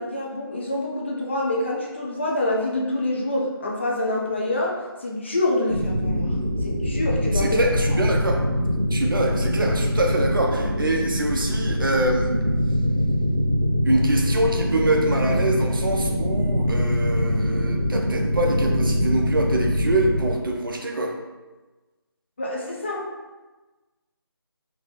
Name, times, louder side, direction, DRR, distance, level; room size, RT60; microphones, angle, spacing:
voice 1, 0.0-6.3 6.6-7.6 7.9-8.0 22.4-23.1, left 1 dB, 30° left, -2 dB, 0.4 m, -26 dB
sound 1, 5.7-20.3, equal, 85° right, 0.8 m, -23 dB
voice 2, 7.3-8.4 8.9-12.3 13.9-21.2, right 1 dB, 60° right, 1 dB, 0.6 m, -24 dB
4.1 x 2.1 x 3.1 m, 1.2 s
figure-of-eight pair, 160°, 13 cm